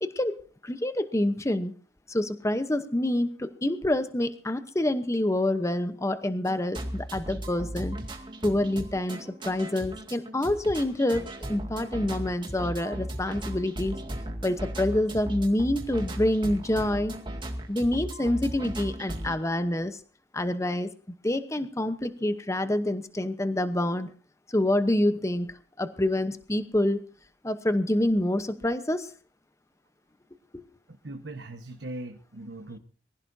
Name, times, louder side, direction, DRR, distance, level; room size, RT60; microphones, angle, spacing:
voice 1, 0.0-1.7 2.1-8.0 8.4-14.0 14.4-17.1 17.7-20.0 20.3-20.9 21.2-24.1 24.5-27.0 27.4-29.1 30.5-30.6, left 1 dB, 15° left, 10 dB, 0.9 m, -27 dB
sound 1, 6.4-19.4, right 1 dB, 25° right, 2.2 m, -36 dB
voice 2, 30.9-32.8, right 1 dB, 75° right, 5 dB, 1.3 m, -40 dB
23.5 x 16.0 x 2.7 m, 0.41 s
head